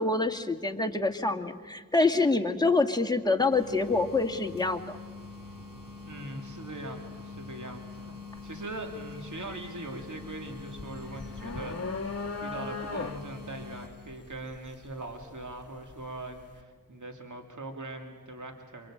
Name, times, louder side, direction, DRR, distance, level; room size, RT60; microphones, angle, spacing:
voice 1, 0.0-4.8, left 3 dB, 10° left, 3 dB, 2.2 m, -26 dB
sound 1, 3.5-13.9, left 4 dB, 80° right, 5.0 m, -44 dB
voice 2, 6.1-12.1 12.4-18.9, right 2 dB, 60° right, 3 dB, 2.8 m, -41 dB
sound 2, 8.4-8.6 9.0-16.0, left 4 dB, 45° left, 1.5 m, -38 dB
27.5 x 23.0 x 8.9 m, 1.5 s
cardioid pair, 40°, 34 cm